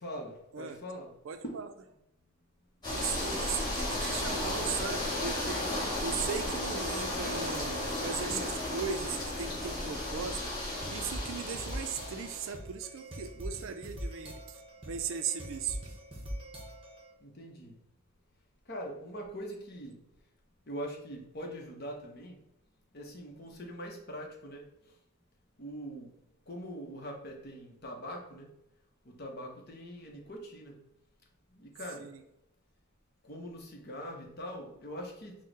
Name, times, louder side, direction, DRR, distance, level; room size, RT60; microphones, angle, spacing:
voice 1, 0.0-1.1 1.4-1.6 17.2-17.7 18.7-20.0 20.7-22.4 22.9-24.6 25.6-26.1 26.5-28.5 29.2-30.7 31.6-32.0 33.2-35.4, equal, 45° left, 1 dB, 0.8 m, -42 dB
voice 2, 1.2-1.7 2.9-5.7 6.0-10.4 10.9-15.8 32.0-32.2, right 7 dB, 65° right, 9 dB, 0.4 m, -38 dB
sound 1, 2.8-12.5, left 1 dB, 20° left, 1.3 m, -34 dB
sound 2, 10.3-17.1, equal, 25° right, 0.8 m, -43 dB
4.5 x 2.1 x 4.5 m, 0.84 s
head